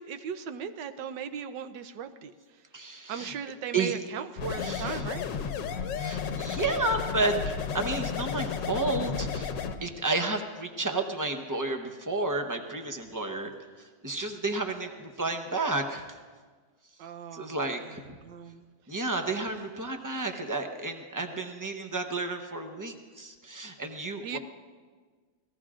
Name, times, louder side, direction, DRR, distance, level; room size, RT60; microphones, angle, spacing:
voice 1, 0.0-2.3 3.1-5.2 17.0-17.5 18.2-18.6 24.2-24.4, right 7 dB, 80° right, 9 dB, 1.4 m, -37 dB
voice 2, 2.7-3.3 3.7-4.0 4.6-5.1 6.0-9.5 9.8-13.5 13.8-16.1 17.3-18.0 18.9-24.4, right 2 dB, 20° right, 5 dB, 0.6 m, -31 dB
sound 1, 4.4-9.8, left 7 dB, 90° left, 1.5 m, -33 dB
27.0 x 19.0 x 2.5 m, 1.5 s
omnidirectional pair, 1.9 m